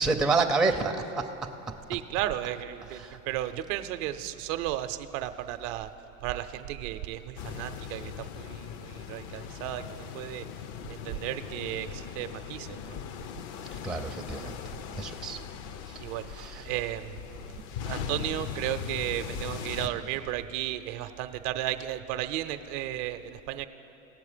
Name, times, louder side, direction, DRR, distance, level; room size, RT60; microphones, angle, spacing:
voice 1, 0.0-1.3 3.0-3.2 13.8-14.6 15.0-15.4 15.9-16.0 16.4-16.7, right 4 dB, ahead, 3 dB, 0.5 m, -28 dB
voice 2, 1.9-5.9 6.2-10.4 10.9-13.0 16.0-17.2 17.9-23.7, right 13 dB, 65° right, 9 dB, 0.6 m, -34 dB
sound 1, 7.4-19.9, left 8 dB, 50° left, 0.6 m, -40 dB
17.5 x 6.9 x 5.0 m, 2.9 s
supercardioid pair, 105°, 40 cm